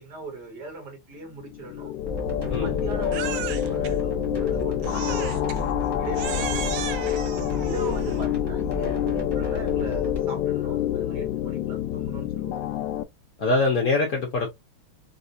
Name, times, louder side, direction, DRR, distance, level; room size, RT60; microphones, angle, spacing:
voice 1, 0.0-1.9 2.6-5.4 6.0-7.1 7.6-12.6, right 3 dB, 55° right, 1.8 m, -39 dB
sound 1, 1.5-13.0, left 12 dB, 75° left, 1.1 m, -27 dB
sound 2, 2.1-10.2, left 1 dB, 20° right, 0.6 m, -33 dB
Crying sobbing, 3.1-3.9 4.8-5.6 6.1-8.3, right 10 dB, 75° right, 1.1 m, -36 dB
voice 2, 13.4-14.5, left 3 dB, 55° left, 1.1 m, -23 dB
4.2 x 2.3 x 2.6 m
omnidirectional pair, 2.3 m